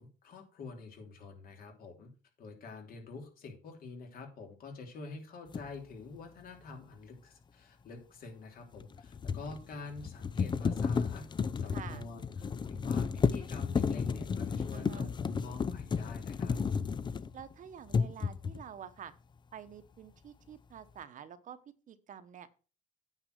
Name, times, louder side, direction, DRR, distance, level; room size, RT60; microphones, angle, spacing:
voice 1, 0.0-2.1 2.4-11.2 11.6-16.6, left 3 dB, 60° left, 3 dB, 3.2 m, -47 dB
sound 1, 5.5-5.7 8.7-17.5 17.9-18.7, left 5 dB, 25° left, 0.5 m, -33 dB
voice 2, 11.7-12.0 14.7-15.1 17.3-19.1 19.5-21.6 21.9-22.5, right 8 dB, 50° right, 11 dB, 1.0 m, -48 dB
9.2 x 4.8 x 6.4 m, 0.35 s
cardioid pair, 110°, 17 cm